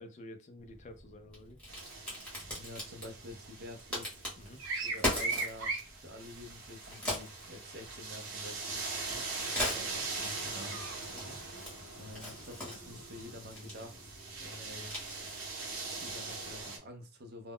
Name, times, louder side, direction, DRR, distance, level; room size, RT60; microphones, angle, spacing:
voice 1, 0.0-1.6 4.4-4.6 9.1-9.3 11.1-11.4, left 1 dB, 35° left, 7 dB, 0.3 m, -50 dB
Crack, 0.6-16.7, left 1 dB, 5° left, 0.9 m, -42 dB
sound 1, 1.7-16.8, right 3 dB, 80° right, 0.7 m, -41 dB
voice 2, 2.4-4.2 4.8-5.7 6.0-8.8 9.7-10.8 12.0-14.9 15.9-17.5, left 1 dB, 50° right, 3 dB, 0.5 m, -48 dB
sound 2, 9.4-15.7, left 1 dB, 65° left, 0.6 m, -54 dB
2.1 x 2.1 x 3.5 m, 0.33 s
head